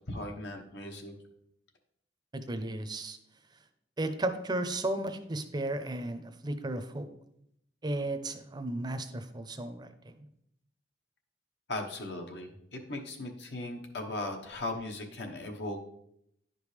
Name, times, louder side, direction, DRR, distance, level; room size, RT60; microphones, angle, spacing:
voice 1, 0.1-1.1 11.7-15.8, left 2 dB, 70° left, 3 dB, 1.1 m, -38 dB
voice 2, 2.3-3.2 4.0-7.1 7.8-10.1, right 1 dB, 25° right, 9 dB, 0.6 m, -34 dB
10.5 x 5.2 x 3.2 m, 0.74 s
head